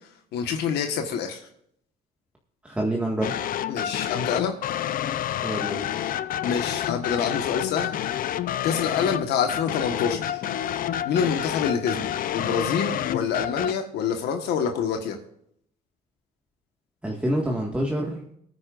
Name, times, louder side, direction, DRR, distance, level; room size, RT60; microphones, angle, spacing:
voice 1, 0.3-1.5 3.7-4.5 6.4-8.0 8.6-10.4 11.0-15.2, left 7 dB, 80° left, 5 dB, 1.5 m, -26 dB
voice 2, 2.6-3.3 5.4-5.9 17.0-18.2, right 1 dB, 5° right, -1 dB, 1.8 m, -27 dB
sound 1, 3.2-13.7, left 11 dB, 55° left, 0.7 m, -29 dB
21.0 x 9.6 x 2.6 m, 0.71 s
cardioid pair, 110°, 17 cm